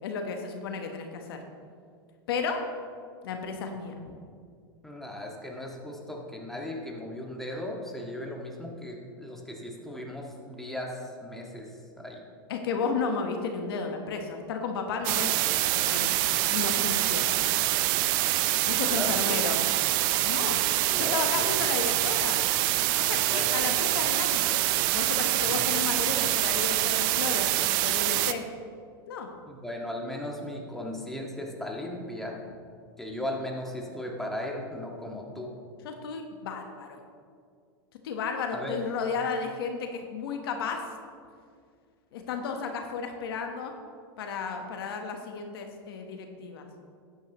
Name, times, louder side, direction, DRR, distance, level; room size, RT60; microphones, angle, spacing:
voice 1, 0.0-1.4 2.3-2.6 3.2-3.9 12.5-17.3 18.6-19.6 20.2-20.6 21.0-22.4 22.9-24.6 24.9-28.4 29.1-29.3 35.8-37.0 38.0-40.8 42.1-43.7 44.2-46.6, left 5 dB, 80° left, 4 dB, 1.3 m, -33 dB
voice 2, 4.8-11.7 12.0-12.2 18.9-19.4 20.9-21.5 23.2-23.7 25.4-25.6 29.5-32.4 33.0-35.5 38.5-38.8, left 1 dB, 5° left, -1 dB, 1.8 m, -37 dB
sound 1, 15.0-28.3, right 15 dB, 60° right, 0.6 m, -25 dB
12.5 x 9.9 x 3.1 m, 2.2 s
hypercardioid pair, 115°, 12 cm